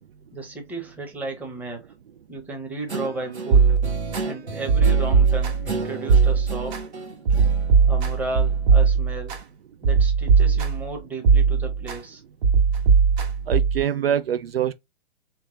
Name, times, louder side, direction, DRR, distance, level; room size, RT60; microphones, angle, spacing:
voice 1, 0.3-1.9 2.3-3.8 4.2-7.0 7.9-9.3 9.8-12.2, right 3 dB, 5° right, 0.8 m, -34 dB
Guitar, 2.9-8.7, right 3 dB, 90° right, 1.0 m, -34 dB
sound 1, 3.5-4.2 4.7-5.7 6.1-6.8 7.3-9.4 9.8-10.9 11.2-12.0 12.4-13.8, right 5 dB, 40° right, 1.5 m, -19 dB
voice 2, 13.5-14.7, right 10 dB, 65° right, 0.5 m, -24 dB
3.5 x 3.0 x 2.9 m
figure-of-eight pair, 120°, 32 cm